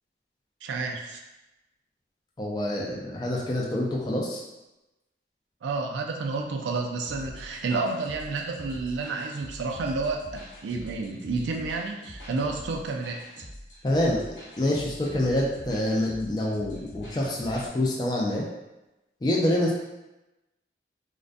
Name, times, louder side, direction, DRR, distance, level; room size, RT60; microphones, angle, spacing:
voice 1, 0.6-1.2 5.6-13.5, right 3 dB, 90° right, 2 dB, 0.3 m, -30 dB
voice 2, 2.4-4.4 13.8-18.4 19.2-19.8, left 1 dB, 25° left, -3 dB, 0.3 m, -26 dB
sound 1, 7.0-17.7, equal, 80° left, 0.8 m, -45 dB
2.4 x 2.1 x 2.5 m, 0.97 s
head